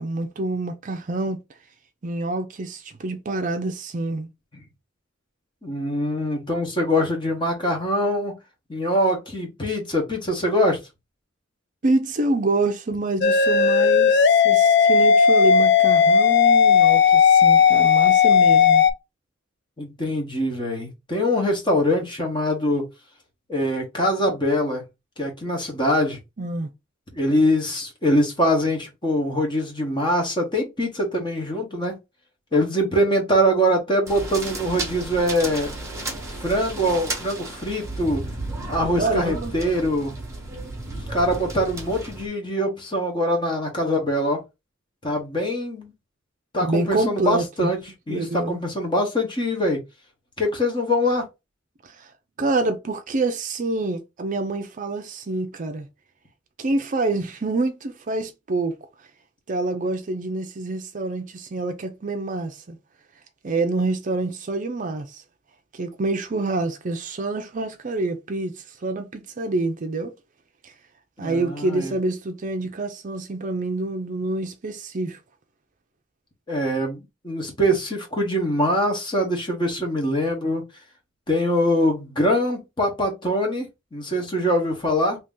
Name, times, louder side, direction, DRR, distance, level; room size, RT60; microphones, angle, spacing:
voice 1, 0.0-1.4 2.0-4.3 11.8-18.9 26.4-26.7 39.0-39.5 46.6-47.7 48.1-48.6 51.8-52.1 52.4-55.9 56.6-58.7 59.5-62.8 63.4-65.2 65.7-70.1 70.6-70.7 71.2-75.2, right 2 dB, 40° right, 0.5 m, -27 dB
voice 2, 5.6-8.4 8.7-10.8 19.8-22.9 23.5-24.8 25.2-26.2 27.1-31.9 32.5-35.7 36.4-38.2 38.7-40.1 41.1-44.4 45.0-45.9 46.5-47.8 48.1-49.8 50.4-51.2 71.2-71.9 76.5-80.6 81.3-85.2, equal, 25° left, 1.2 m, -23 dB
sound 1, 13.2-18.9, left 6 dB, 60° left, 0.4 m, -15 dB
sound 2, 34.1-42.3, right 2 dB, 15° right, 1.2 m, -33 dB
2.9 x 2.8 x 3.6 m
head